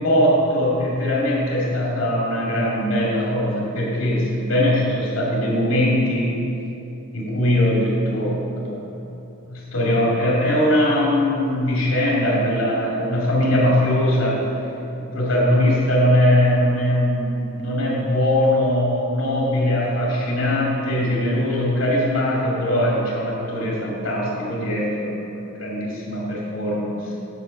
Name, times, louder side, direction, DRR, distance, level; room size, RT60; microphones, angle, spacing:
voice 1, 0.0-6.3 7.1-8.8 9.4-14.4 15.0-27.1, left 1 dB, 90° left, -5 dB, 2.4 m, -21 dB
10.0 x 6.8 x 5.3 m, 2.8 s
head